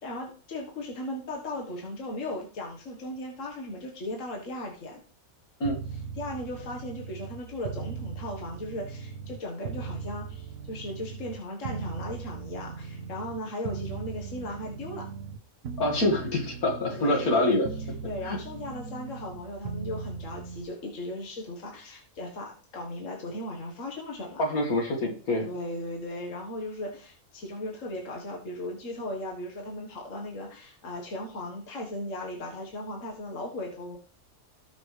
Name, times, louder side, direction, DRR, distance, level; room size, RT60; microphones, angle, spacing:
voice 1, 0.0-5.0 6.2-15.1 16.9-17.5 18.0-24.4 25.3-34.0, left 1 dB, 60° left, 0 dB, 1.8 m, -37 dB
sound 1, 5.6-9.4 9.6-15.4 15.6-17.4 17.6-20.6, right 6 dB, 65° right, 1.1 m, -39 dB
voice 2, 15.8-17.7 18.2-18.4 24.4-25.5, left 1 dB, 75° left, 2 dB, 2.5 m, -26 dB
18.5 x 6.1 x 3.3 m, 0.42 s
omnidirectional pair, 1.5 m